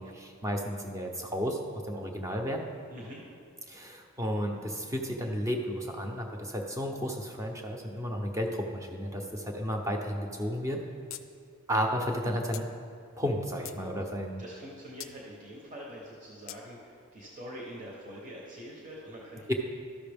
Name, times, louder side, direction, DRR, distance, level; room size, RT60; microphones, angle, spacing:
voice 1, 0.0-1.6 1.9-2.6 3.7-10.8 11.7-12.7 13.2-14.4 19.5-19.6, equal, 15° right, 2 dB, 0.7 m, -32 dB
voice 2, 2.9-3.2 13.9-14.0 14.4-19.5, equal, 35° right, -3 dB, 0.9 m, -44 dB
sound 1, 11.1-11.2 11.5-11.6 12.5-12.7 13.3-13.8 15.0-15.1 16.5-16.6, left 13 dB, 60° left, 0.4 m, -42 dB
12.5 x 5.7 x 3.5 m, 2.4 s
head